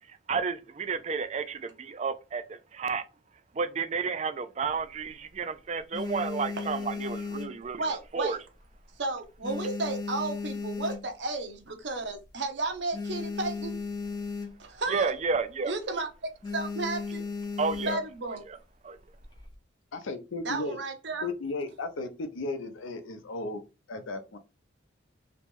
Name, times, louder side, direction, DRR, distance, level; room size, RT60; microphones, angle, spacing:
voice 1, 0.1-3.0 3.5-8.5 14.9-15.7 17.6-18.0 18.3-18.6 18.8-19.0, right 5 dB, 35° right, 0.3 m, -32 dB
sound 1, 4.6-5.3 5.7-8.2 8.5-8.9 9.2-11.4 11.9-12.0 12.2-12.3 12.6-14.8 15.1-15.4 15.7-16.0 16.4-18.3 19.0-19.6, left 4 dB, 20° left, 0.5 m, -36 dB
voice 2, 7.8-8.4 9.0-13.7 14.6-15.1 15.7-17.2 17.9-18.4 20.4-21.3, right 3 dB, 60° right, 0.7 m, -33 dB
voice 3, 19.9-20.8 21.2-23.6 23.9-24.4, left 3 dB, 80° left, 0.6 m, -35 dB
3.0 x 2.9 x 3.5 m
head